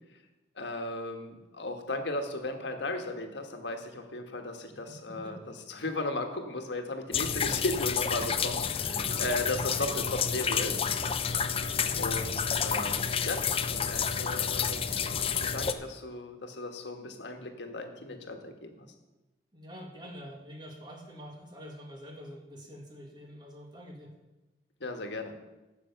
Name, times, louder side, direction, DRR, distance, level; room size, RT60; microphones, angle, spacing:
voice 1, 0.5-5.4 5.7-10.7 12.0-14.8 15.4-18.9 24.8-25.3, left 2 dB, 70° left, 5 dB, 1.5 m, -36 dB
voice 2, 4.8-5.6 8.7-9.3 19.5-24.1, equal, 25° right, 1 dB, 1.8 m, -46 dB
sound 1, 7.1-15.7, left 6 dB, 30° left, 0.5 m, -30 dB
10.5 x 7.1 x 6.8 m, 1.1 s
head